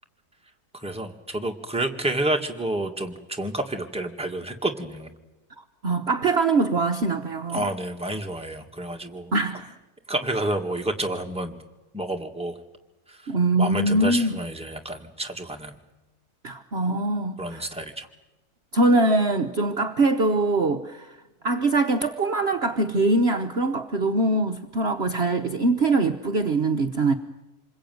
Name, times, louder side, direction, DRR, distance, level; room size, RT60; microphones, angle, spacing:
voice 1, 0.7-5.1 7.5-9.3 10.1-11.6 11.9-12.5 13.1-13.3 13.6-15.8 17.4-18.1, right 1 dB, 5° right, 2 dB, 1.9 m, -29 dB
voice 2, 5.8-7.7 9.3-9.7 13.3-14.4 16.4-17.7 18.7-21.2 21.4-27.1, right 2 dB, 45° right, 5 dB, 1.2 m, -23 dB
27.0 x 22.0 x 9.4 m, 1.0 s
omnidirectional pair, 1.6 m